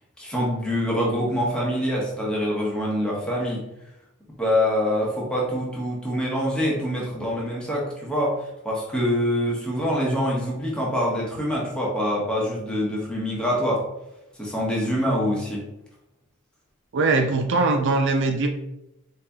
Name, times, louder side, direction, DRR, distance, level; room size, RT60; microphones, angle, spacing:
voice 1, 0.2-3.6 4.4-13.8 14.4-15.6, equal, 5° left, -4 dB, 1.1 m, -25 dB
voice 2, 16.9-18.5, right 3 dB, 55° right, 5 dB, 0.4 m, -21 dB
4.8 x 2.9 x 3.5 m, 0.88 s
head